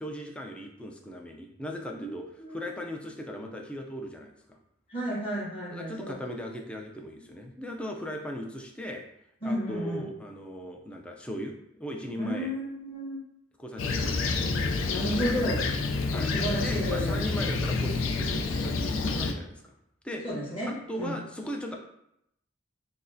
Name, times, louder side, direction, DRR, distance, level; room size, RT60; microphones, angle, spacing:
voice 1, 0.0-4.6 5.7-9.0 9.4-12.5 13.6-14.3 16.1-16.3 16.6-19.7 20.0-20.2 20.7-21.8, equal, 5° left, 1 dB, 0.3 m, -38 dB
voice 2, 2.4-2.7 4.9-6.1 9.4-10.1 12.2-13.2 14.8-15.6 16.3-17.4 20.2-21.2, equal, 30° left, -7 dB, 1.2 m, -32 dB
Fixed-wing aircraft airplane, 13.8-19.3, left 3 dB, 90° left, 0.4 m, -28 dB
6.0 x 2.1 x 2.6 m, 0.78 s
head